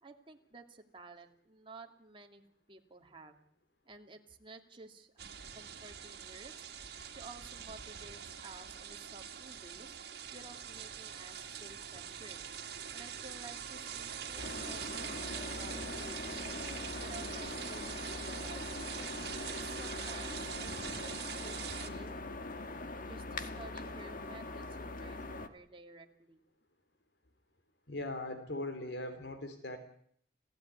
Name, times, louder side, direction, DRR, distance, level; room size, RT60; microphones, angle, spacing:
voice 1, 0.0-3.4 3.9-5.1 5.5-6.5 7.1-12.4 12.9-19.1 19.5-22.3 23.0-26.5, right 3 dB, 30° right, 3 dB, 2.4 m, -53 dB
sound 1, 5.2-21.9, right 8 dB, 65° right, 2.6 m, -44 dB
sound 2, 10.2-16.4, equal, 5° left, 6.0 m, -62 dB
sound 3, 14.4-25.5, left 2 dB, 50° left, 1.7 m, -42 dB
voice 2, 27.9-29.8, left 2 dB, 70° left, 8 dB, 3.1 m, -40 dB
30.0 x 15.5 x 9.6 m, 0.67 s
head